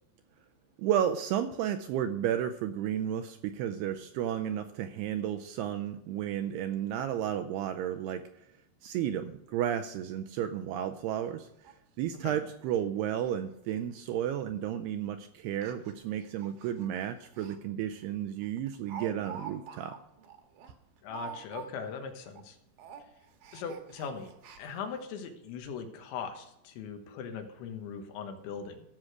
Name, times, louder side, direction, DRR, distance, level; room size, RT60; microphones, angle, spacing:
voice 1, 0.8-8.2 8.8-11.5 12.0-19.9, right 10 dB, 85° right, 8 dB, 2.3 m, -32 dB
Speech, 10.7-10.8 11.2-11.3 11.6-11.7 12.1-12.2 12.7-12.8 13.1-13.4 13.6-13.7 14.5-14.7 15.5-17.6 17.9-18.0 18.4-22.0 22.2-22.5 22.7-25.0 25.6-25.7 26.0-26.1, right 7 dB, 65° right, 2.4 m, -47 dB
voice 2, 21.0-22.6 23.5-28.8, left 6 dB, 85° left, 6 dB, 3.6 m, -40 dB
15.0 x 6.4 x 4.8 m, 0.83 s
omnidirectional pair, 5.2 m